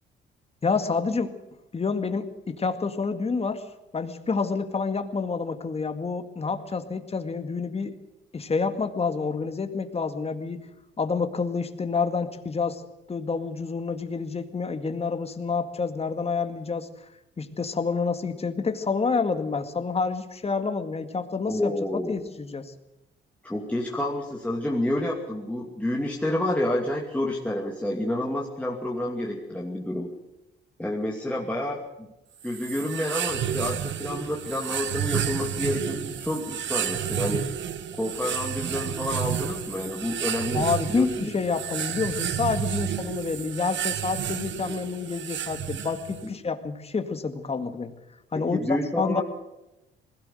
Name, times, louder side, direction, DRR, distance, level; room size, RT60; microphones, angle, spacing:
voice 1, 0.6-1.3 1.7-3.6 3.9-7.9 8.3-10.7 11.0-12.8 13.1-16.9 17.4-21.7 22.1-22.7 40.5-47.9 48.3-49.2, left 4 dB, 30° left, 7 dB, 2.1 m, -28 dB
voice 2, 21.5-22.1 23.4-30.1 30.8-32.1 32.4-37.4 37.9-41.3 46.2-46.3 48.3-49.2, left 1 dB, 5° left, -2 dB, 2.6 m, -29 dB
sound 1, 32.4-46.3, right 9 dB, 70° right, 1.3 m, -31 dB
20.5 x 16.5 x 7.9 m, 0.95 s
cardioid pair, 90°, 20 cm